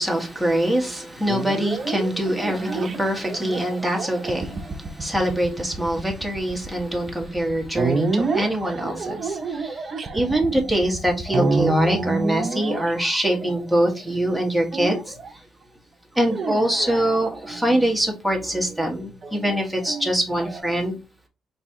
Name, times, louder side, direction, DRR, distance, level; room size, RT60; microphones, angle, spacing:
voice 1, 0.0-15.1 16.2-21.0, right 1 dB, ahead, 1.3 m, -24 dB
sound 1, 1.3-13.9 14.7-15.3 16.2-17.7 19.2-20.6, right 3 dB, 40° right, 0.6 m, -28 dB
4.0 x 2.7 x 3.7 m
cardioid pair, 90°, 0 cm